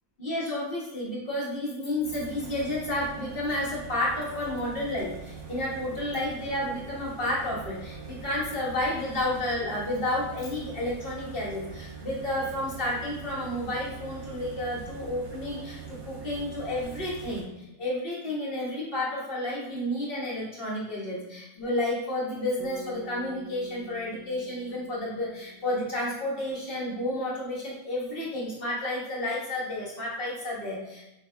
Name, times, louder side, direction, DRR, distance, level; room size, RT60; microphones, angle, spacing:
voice 1, 0.2-31.0, left 1 dB, 45° left, -7 dB, 1.6 m, -31 dB
sound 1, 2.0-17.4, right 5 dB, 45° right, 1.0 m, -43 dB
sound 2, 22.6-26.8, left 1 dB, 30° right, 0.3 m, -48 dB
7.0 x 2.9 x 2.3 m, 0.90 s
omnidirectional pair, 1.4 m